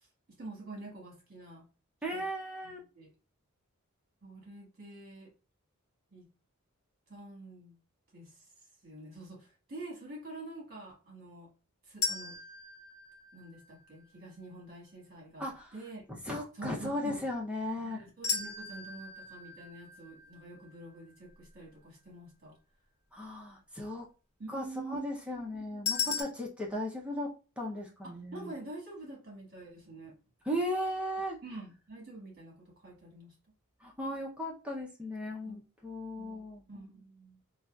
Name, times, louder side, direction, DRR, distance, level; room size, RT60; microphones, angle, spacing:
voice 1, 0.4-1.7 2.1-2.2 2.6-3.1 4.2-5.3 6.1-6.2 7.1-7.8 8.1-8.4 8.8-11.5 11.9-12.4 13.3-16.0 16.5-17.2 17.8-22.6 24.4-25.0 25.5-25.8 26.0-26.4 28.0-30.1 31.4-33.3 35.3-35.6 36.2-36.4 36.7-37.4, right 2 dB, 45° right, -2 dB, 1.5 m, -47 dB
voice 2, 2.0-2.8 15.4-15.7 16.2-18.1 23.1-24.1 24.5-27.3 27.6-28.5 30.4-31.4 33.8-36.6, left 1 dB, 5° right, -2 dB, 0.5 m, -36 dB
sound 1, 12.0-14.1 18.2-21.3 25.9-26.2, left 5 dB, 65° left, 0.8 m, -37 dB
3.9 x 2.3 x 2.2 m, 0.33 s
head